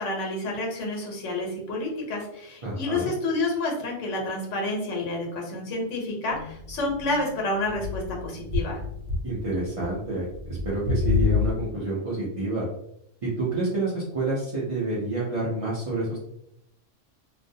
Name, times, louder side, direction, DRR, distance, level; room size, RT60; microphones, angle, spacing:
voice 1, 0.0-8.8, left 2 dB, 75° left, 0 dB, 1.1 m, -29 dB
voice 2, 2.6-3.1 9.2-12.6 13.2-16.2, right 2 dB, 55° right, -7 dB, 0.4 m, -28 dB
sound 1, 6.3-7.3 7.7-9.3 9.7-10.0 10.3-11.5, left 4 dB, 75° right, 1.1 m, -28 dB
2.4 x 2.0 x 2.6 m, 0.76 s
omnidirectional pair, 1.3 m